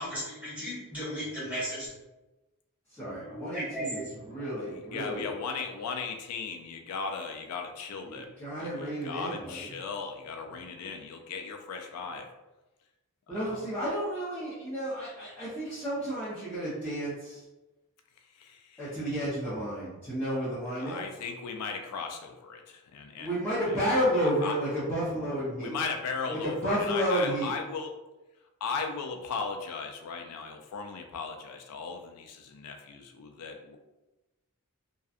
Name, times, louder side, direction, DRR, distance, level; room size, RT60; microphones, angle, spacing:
voice 1, 0.0-1.9 3.2-5.3, equal, 5° right, -10 dB, 1.3 m, -37 dB
voice 2, 2.9-4.0 4.3-5.3 8.0-9.7 13.3-17.4 18.8-21.0 23.2-25.7 26.3-27.5, equal, 10° left, -13 dB, 0.6 m, -31 dB
voice 3, 4.7-8.3 8.6-12.3 13.3-13.7 18.2-18.9 20.8-24.6 25.6-27.9 28.6-33.8, left 5 dB, 85° left, 5 dB, 0.3 m, -37 dB
2.6 x 2.2 x 2.4 m, 1.0 s
head